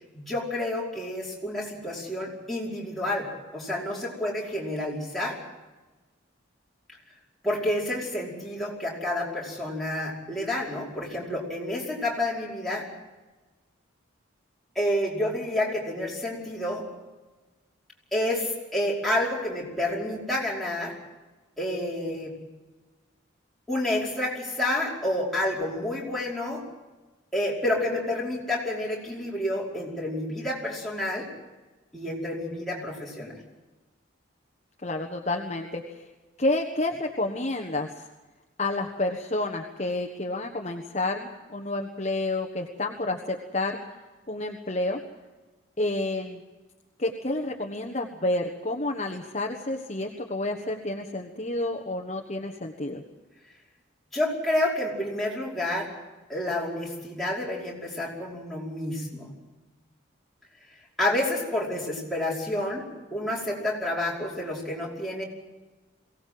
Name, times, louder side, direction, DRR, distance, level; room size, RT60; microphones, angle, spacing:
voice 1, 0.3-3.3 3.5-5.4 7.4-12.9 14.8-16.8 18.1-20.9 21.6-22.3 23.7-26.6 27.3-31.3 31.9-33.3 54.1-55.9 56.3-59.3 61.0-62.8 63.1-65.2, left 1 dB, ahead, -6 dB, 5.2 m, -29 dB
voice 2, 34.8-36.0 36.4-37.9 38.6-43.8 44.3-45.0 45.8-46.4 47.0-53.0, left 2 dB, 35° left, 2 dB, 1.4 m, -29 dB
23.0 x 17.5 x 7.8 m, 1.2 s
head